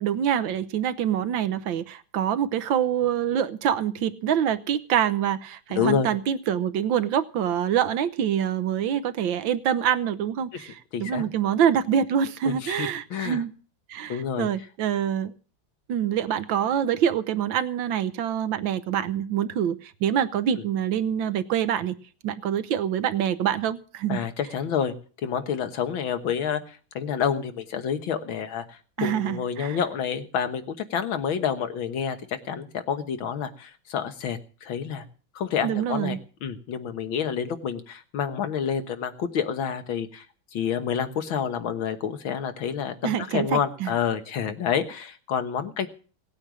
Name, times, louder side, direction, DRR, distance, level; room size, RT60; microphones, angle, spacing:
voice 1, 0.0-13.5 13.9-15.3 15.9-22.0 22.2-24.2 29.0-29.8 35.6-36.2 43.0-43.9, right 9 dB, 75° right, 14 dB, 1.6 m, -25 dB
voice 2, 5.7-6.1 10.5-10.6 10.9-11.3 12.5-13.4 14.1-14.5 24.1-24.9 25.2-35.0 35.4-40.3 40.5-45.9, left 7 dB, 85° left, 8 dB, 2.0 m, -28 dB
17.5 x 8.7 x 6.3 m, 0.40 s
omnidirectional pair, 2.1 m